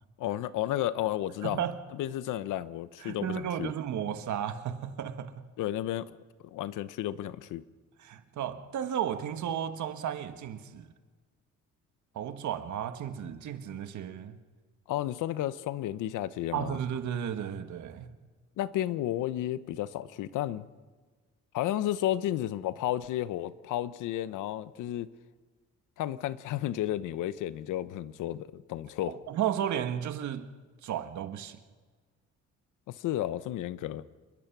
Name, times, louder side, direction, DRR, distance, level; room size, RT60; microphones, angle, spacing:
voice 1, 0.2-1.6 1.9-3.7 5.6-6.2 6.5-7.6 14.9-16.8 18.6-20.7 21.5-25.1 26.0-29.1 32.9-34.0, left 13 dB, 90° left, 0.9 m, -32 dB
voice 2, 1.4-1.8 3.0-5.5 8.0-10.9 12.1-14.4 16.5-18.1 29.1-30.5 30.8-31.6, right 9 dB, 70° right, 1.7 m, -34 dB
28.0 x 22.0 x 6.1 m
cardioid pair, 90°, 30 cm